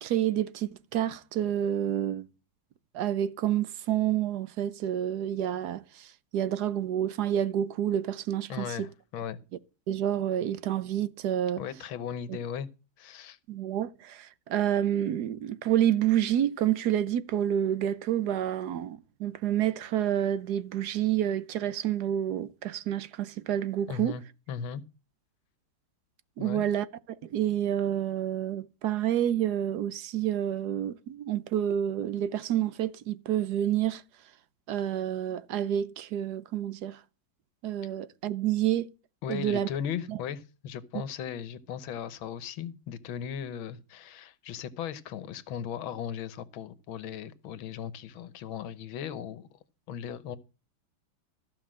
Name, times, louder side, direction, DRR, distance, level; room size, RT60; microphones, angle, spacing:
voice 1, 0.0-2.3 2.9-8.9 9.9-11.6 13.5-24.2 26.4-26.9 27.2-34.0 34.7-37.0 37.6-38.9 39.3-39.7 40.1-40.2, right 11 dB, 65° right, 1.2 m, -29 dB
voice 2, 8.5-9.4 11.6-12.7 13.0-13.4 23.9-24.2 24.5-24.8 26.4-26.6 37.8-37.9 39.2-49.6 49.9-50.4, left 8 dB, 85° left, 1.7 m, -37 dB
14.5 x 5.7 x 7.5 m
omnidirectional pair, 2.1 m